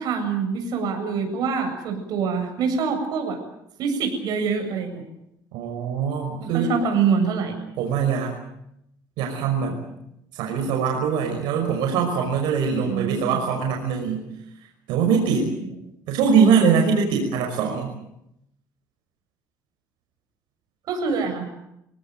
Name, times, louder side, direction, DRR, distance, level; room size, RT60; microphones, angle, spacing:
voice 1, 0.0-3.4 3.8-5.0 6.4-7.6 12.8-13.4 20.9-21.5, right 5 dB, 65° right, 5 dB, 7.7 m, -25 dB
voice 2, 5.5-6.7 7.8-8.3 9.2-9.8 10.3-14.2 14.9-15.5 16.1-17.9, right 6 dB, 85° right, 1 dB, 5.7 m, -22 dB
25.5 x 18.5 x 9.3 m, 0.80 s
cardioid pair, 120°, 7 cm